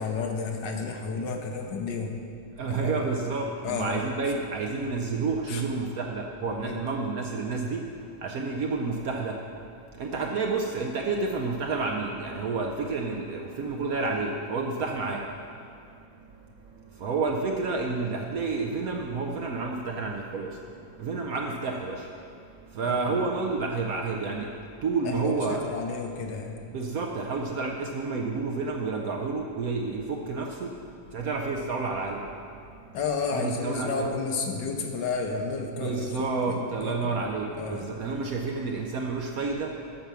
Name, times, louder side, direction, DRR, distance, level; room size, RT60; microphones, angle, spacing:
voice 1, 0.0-2.2 2.7-2.9 3.6-4.0 5.5-5.6 6.6-6.8 22.9-23.2 25.0-26.6 32.9-37.1 37.6-38.0, left 4 dB, 70° left, 3 dB, 1.5 m, -32 dB
voice 2, 2.6-7.8 8.2-9.3 10.0-15.2 17.0-20.5 21.0-22.1 22.8-24.5 24.8-25.6 26.7-30.7 31.1-32.2 33.3-34.1 35.7-39.7, right 4 dB, 65° right, 1 dB, 0.9 m, -29 dB
8.3 x 5.9 x 6.8 m, 2.4 s
omnidirectional pair, 2.0 m